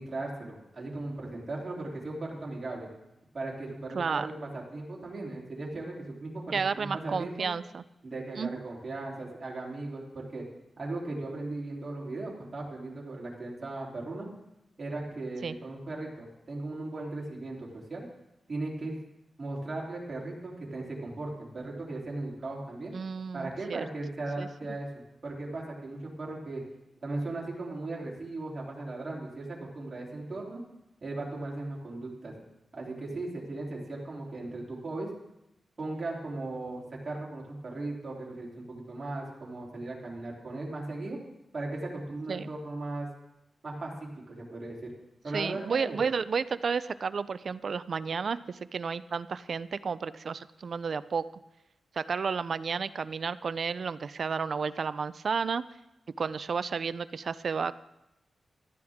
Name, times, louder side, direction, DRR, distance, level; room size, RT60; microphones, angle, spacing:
voice 1, 0.0-2.9 3.3-7.5 8.0-10.4 10.8-14.3 14.8-18.1 18.5-19.0 19.4-22.9 23.3-24.9 25.2-26.6 27.0-30.6 31.0-32.3 32.7-35.1 35.8-41.2 41.5-43.1 43.6-44.9 45.2-46.0, right 2 dB, 30° right, -3 dB, 3.2 m, -37 dB
voice 2, 3.9-4.3 6.5-7.8 8.4-8.6 15.4-15.5 22.9-23.8 24.4-24.5 42.3-42.5 45.3-51.3 51.9-55.6 56.2-57.7, right 5 dB, 45° right, 15 dB, 0.4 m, -32 dB
17.5 x 13.0 x 3.6 m, 0.89 s
wide cardioid pair, 170°, 0 cm